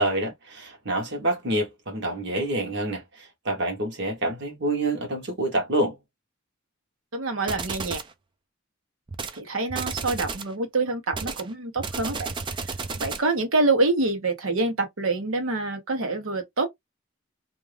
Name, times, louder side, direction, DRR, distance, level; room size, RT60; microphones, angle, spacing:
voice 1, 0.0-6.0, right 1 dB, 55° right, 1.1 m, -27 dB
voice 2, 7.1-8.0 9.3-12.3 12.7-16.7, right 3 dB, 85° right, 1.0 m, -26 dB
sound 1, 7.5-8.1 9.1-9.4 9.7-10.5 11.1-13.3, right 4 dB, 25° right, 0.3 m, -32 dB
2.5 x 2.4 x 3.2 m
head